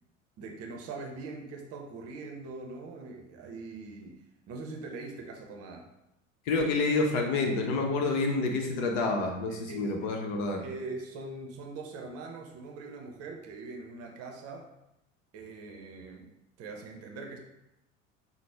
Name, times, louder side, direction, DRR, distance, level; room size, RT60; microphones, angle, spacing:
voice 1, 0.4-4.2 4.5-5.9 9.5-10.0 10.6-14.7 15.3-16.3 16.6-17.4, right 3 dB, 40° right, 2 dB, 0.7 m, -42 dB
voice 2, 6.5-10.6, left 3 dB, 50° left, 2 dB, 0.8 m, -28 dB
5.8 x 2.1 x 3.4 m, 0.87 s
figure-of-eight pair, 65°, 39 cm